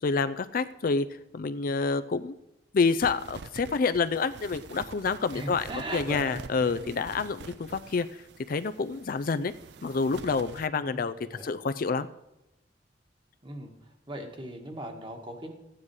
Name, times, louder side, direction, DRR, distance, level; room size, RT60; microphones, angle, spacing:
voice 1, 0.0-1.1 1.3-2.3 2.7-8.2 8.5-9.5 9.8-12.1, left 4 dB, 50° left, 12 dB, 0.4 m, -28 dB
sound 1, 3.0-10.7, right 4 dB, 65° right, 0.5 m, -46 dB
voice 2, 5.3-6.9 10.7-11.5 13.4-15.5, right 1 dB, 30° right, 3 dB, 1.7 m, -39 dB
14.5 x 9.7 x 4.8 m, 0.92 s
head